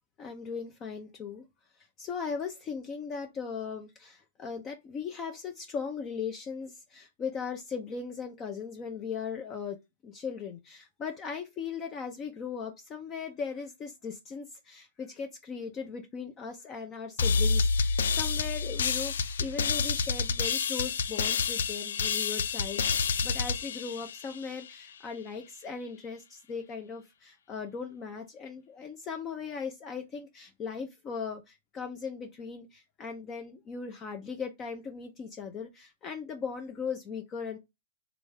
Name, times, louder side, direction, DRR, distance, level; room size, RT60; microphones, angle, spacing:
voice 1, 0.2-1.4 2.0-9.8 10.0-37.6, left 6 dB, 30° left, 0.6 m, -38 dB
sound 1, 17.2-24.7, left 5 dB, 70° left, 0.4 m, -29 dB
3.6 x 3.0 x 3.4 m
hypercardioid pair, 110°, 0 cm